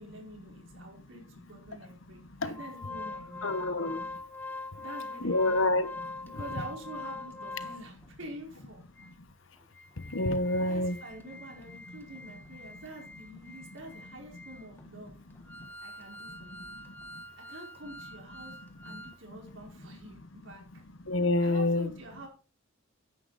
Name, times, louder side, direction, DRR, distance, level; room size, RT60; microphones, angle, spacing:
voice 1, 0.0-3.7 4.8-5.8 6.2-8.8 10.6-15.2 15.8-16.7 17.4-18.6 18.8-20.8 21.4-22.3, right 1 dB, 70° right, 4.6 m, -47 dB
Organ, 2.5-8.1 8.6-8.7 9.0-9.1 9.6-19.2 19.5-19.6, left 2 dB, 10° left, 1.2 m, -44 dB
voice 2, 3.4-4.0 5.2-5.9 10.1-11.0 21.1-21.9, left 2 dB, 75° left, 1.1 m, -27 dB
10.0 x 9.8 x 4.1 m
head